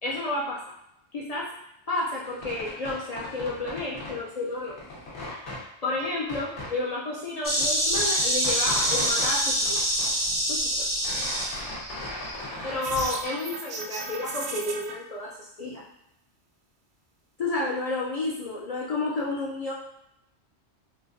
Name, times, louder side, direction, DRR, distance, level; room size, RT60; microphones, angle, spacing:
voice 1, 0.0-0.6 1.1-1.5 1.9-4.8 5.8-9.8 10.5-10.9 12.6-15.8 17.4-19.7, left 2 dB, 55° left, -4 dB, 0.4 m, -31 dB
sound 1, 2.3-4.2 4.5-5.6 6.2-6.7 7.2-7.3 7.5-9.3 9.6-10.5 10.8-13.2, left 1 dB, 85° left, 1.2 m, -38 dB
Insect, 7.4-12.4, equal, 15° right, 0.5 m, -26 dB
sound 2, 12.7-14.9, right 3 dB, 70° right, 0.8 m, -35 dB
3.9 x 2.3 x 2.5 m, 0.79 s
omnidirectional pair, 1.2 m